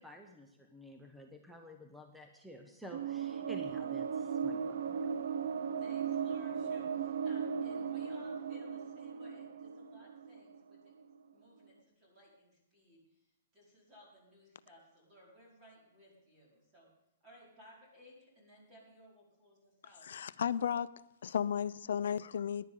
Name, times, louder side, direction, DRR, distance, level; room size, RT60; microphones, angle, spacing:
voice 1, 0.0-5.1, equal, ahead, 3 dB, 0.7 m, -51 dB
sound 1, 2.9-11.0, right 7 dB, 70° right, 0.7 m, -37 dB
voice 2, 5.8-10.9 11.3-13.3 13.5-16.9 17.2-20.1, equal, 20° right, -5 dB, 4.9 m, -60 dB
voice 3, 20.0-20.9 21.2-22.7, left 8 dB, 75° left, 16 dB, 0.5 m, -34 dB
17.0 x 11.0 x 3.8 m, 0.80 s
hypercardioid pair, 160°, 0 cm